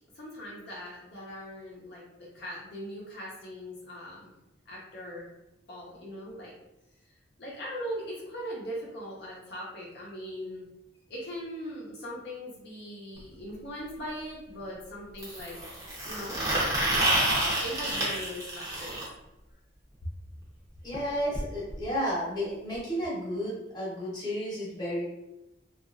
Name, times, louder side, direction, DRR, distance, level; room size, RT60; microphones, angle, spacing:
voice 1, 0.2-4.3 4.7-5.3 5.7-6.5 7.4-10.7 11.1-15.6 16.0-16.4 16.9-19.1, equal, 60° left, -5 dB, 0.6 m, -40 dB
sound 1, 13.2-13.3 15.2-19.0 20.9-21.0 21.3-21.4 21.7-21.8 22.7-22.8, right 1 dB, 15° right, 0.6 m, -28 dB
voice 2, 20.8-25.1, equal, 20° left, -7 dB, 0.9 m, -32 dB
2.8 x 2.3 x 2.5 m, 0.95 s
head